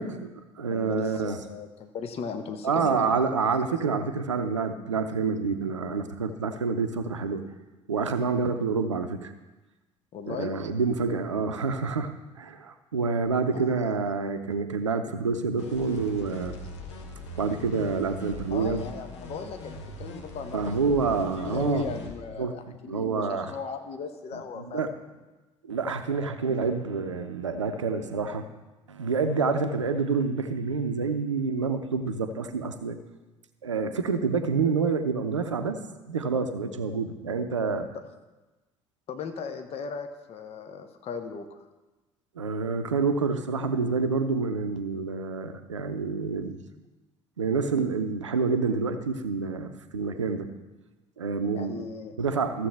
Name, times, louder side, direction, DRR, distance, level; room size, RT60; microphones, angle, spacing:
voice 1, 0.0-1.4 2.6-7.4 7.9-9.3 10.3-16.6 17.4-18.8 20.5-21.8 22.4-22.5 22.9-23.6 24.6-24.9 25.6-28.4 28.9-33.0 33.6-35.8 36.1-37.9 42.4-46.6 47.4-50.5 51.2-51.8 52.2-52.7, right 4 dB, 80° right, 8 dB, 0.7 m, -28 dB
voice 2, 0.7-3.0 10.1-10.5 13.5-13.7 18.5-24.9 26.5-26.6 37.9-38.0 39.1-41.6 51.5-52.1, left 5 dB, 40° left, 7 dB, 0.9 m, -37 dB
sound 1, 15.6-22.2, left 1 dB, 70° left, 1.1 m, -40 dB
14.0 x 7.5 x 3.4 m, 1.1 s
figure-of-eight pair, 55°, 15 cm